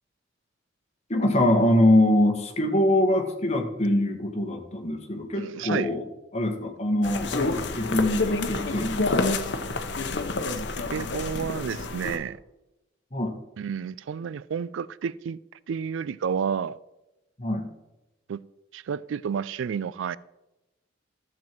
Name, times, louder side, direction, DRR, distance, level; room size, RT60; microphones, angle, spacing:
voice 1, 1.1-6.0 6.3-9.3 13.1-13.3 17.4-17.7, left 1 dB, 35° left, 1.5 m, -23 dB
voice 2, 5.4-5.9 10.9-12.4 13.6-15.4 15.7-16.8 18.3-18.4 18.7-20.2, right 7 dB, 85° right, 0.3 m, -30 dB
sound 1, 7.0-12.2, left 3 dB, 65° left, 0.9 m, -28 dB
13.0 x 7.5 x 4.6 m
head